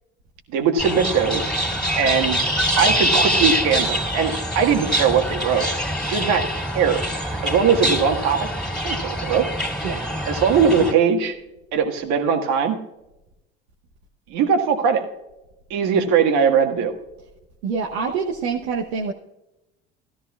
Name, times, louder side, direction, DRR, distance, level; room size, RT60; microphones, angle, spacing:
voice 1, 0.5-1.5 2.0-5.7 6.1-8.5 8.8-9.5 10.3-11.3 11.7-12.8 14.3-15.0 15.7-16.9, right 6 dB, 65° right, 5 dB, 1.7 m, -20 dB
sound 1, 0.8-10.9, equal, ahead, 2.6 m, -24 dB
voice 2, 17.6-19.1, right 5 dB, 80° right, 0 dB, 1.0 m, -26 dB
14.0 x 13.0 x 2.4 m, 0.92 s
hypercardioid pair, 75°, 30 cm